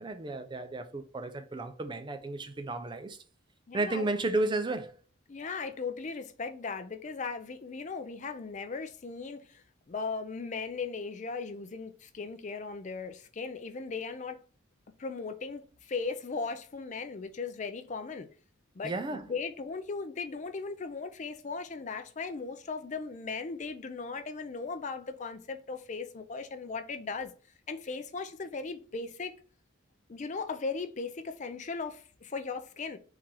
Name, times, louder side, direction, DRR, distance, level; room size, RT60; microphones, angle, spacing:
voice 1, 0.0-3.2 3.7-4.9 18.8-19.2, right 2 dB, 25° right, 0.4 m, -33 dB
voice 2, 3.7-4.1 5.3-14.4 15.0-18.3 18.7-27.3 27.7-29.3 30.1-33.0, left 4 dB, 40° left, 0.4 m, -37 dB
3.7 x 2.9 x 4.6 m
head